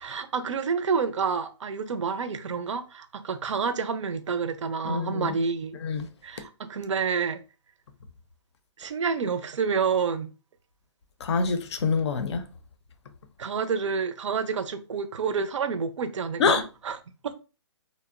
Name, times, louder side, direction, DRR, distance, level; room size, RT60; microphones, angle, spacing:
voice 1, 0.0-5.8 6.2-7.4 8.8-10.3 13.4-17.0 17.2-17.3, right 5 dB, 85° right, 0.5 m, -28 dB
voice 2, 4.8-5.3 5.8-6.1 11.2-12.5 16.4-16.6, left 5 dB, 65° left, 0.5 m, -25 dB
2.7 x 2.0 x 2.4 m
hypercardioid pair, 155°, 15 cm